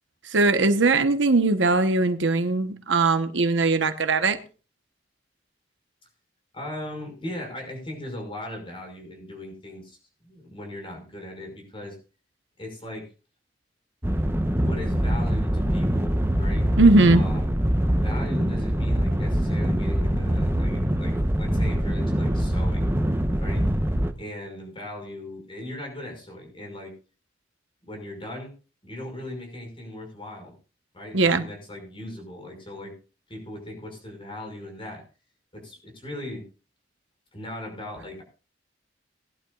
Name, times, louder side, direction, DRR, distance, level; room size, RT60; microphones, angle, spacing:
voice 1, 0.2-4.4 16.8-17.2 31.1-31.4, right 3 dB, 75° right, 9 dB, 1.1 m, -20 dB
voice 2, 6.5-10.0 10.2-12.0 12.6-13.1 14.6-16.7 17.1-17.5 17.9-22.9 23.4-23.7 24.2-26.9 27.8-28.5 28.8-30.5 30.9-32.9 33.3-35.0 35.5-36.4 37.3-38.2, left 1 dB, 30° left, 2 dB, 5.7 m, -38 dB
sound 1, 14.0-24.1, equal, 15° right, 0.9 m, -24 dB
19.5 x 11.5 x 2.4 m, 0.34 s
head